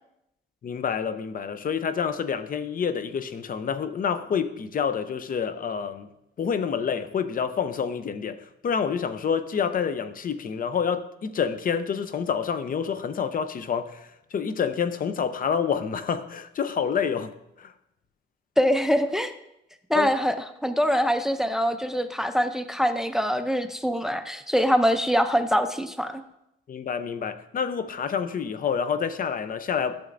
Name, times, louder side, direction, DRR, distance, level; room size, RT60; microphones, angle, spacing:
voice 1, 0.6-6.1 6.4-17.7 19.9-20.1 26.7-30.0, left 7 dB, 45° left, 0.6 m, -28 dB
voice 2, 18.6-19.3 19.9-20.3 20.6-26.2, equal, ahead, 0.5 m, -24 dB
11.0 x 6.9 x 2.6 m
cardioid pair, 90°, 20 cm